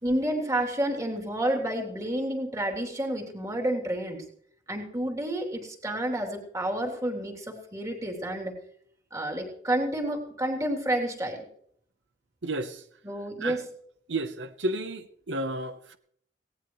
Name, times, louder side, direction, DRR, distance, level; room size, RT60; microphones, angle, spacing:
voice 1, 0.0-4.2 4.7-8.6 9.1-11.5 13.0-13.6, right 1 dB, 20° right, 3.3 m, -30 dB
voice 2, 12.4-12.8 13.4-13.6 14.1-16.0, right 2 dB, 80° right, 1.0 m, -32 dB
18.5 x 18.0 x 3.2 m
head